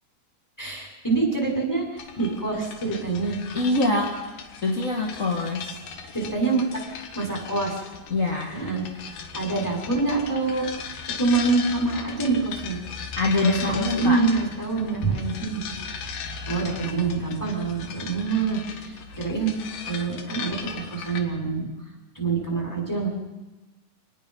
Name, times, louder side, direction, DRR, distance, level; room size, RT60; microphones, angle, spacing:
voice 1, 0.6-3.4 6.1-6.6 7.1-7.8 8.5-10.7 11.2-12.8 13.3-15.7 16.5-21.7 22.1-23.1, right 4 dB, 5° left, 0 dB, 5.5 m, -26 dB
sound 1, 2.0-21.2, left 6 dB, 65° left, 3.0 m, -38 dB
voice 2, 3.5-4.1 4.6-5.8 8.1-8.6 13.2-14.2, left 2 dB, 30° left, -2 dB, 1.7 m, -24 dB
26.5 x 19.0 x 5.6 m, 1.1 s
omnidirectional pair, 4.5 m